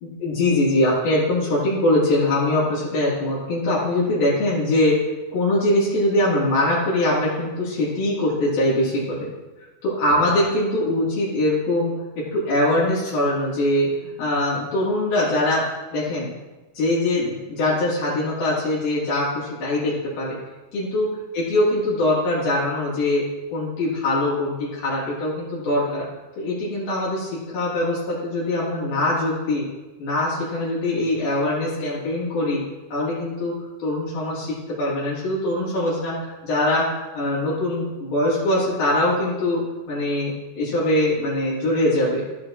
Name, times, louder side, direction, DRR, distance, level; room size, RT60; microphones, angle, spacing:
voice 1, 0.0-5.0 5.3-9.3 9.8-15.6 15.9-16.3 16.7-20.4 20.7-23.2 23.5-26.1 26.4-29.7 30.0-32.6 32.9-33.5 33.8-36.9 37.1-39.6 39.9-42.2, left 1 dB, 75° left, -8 dB, 4.3 m, -22 dB
14.5 x 7.7 x 2.9 m, 1.1 s
omnidirectional pair, 4.4 m